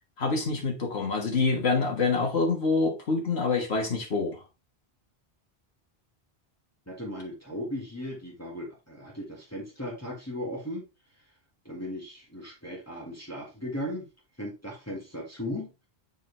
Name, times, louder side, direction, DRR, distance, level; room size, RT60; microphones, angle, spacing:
voice 1, 0.2-4.4, left 4 dB, 85° left, 1.7 m, -26 dB
voice 2, 6.9-10.8 11.7-14.1 14.4-15.9, left 1 dB, 15° left, 1.8 m, -37 dB
6.9 x 4.7 x 3.3 m
omnidirectional pair, 1.0 m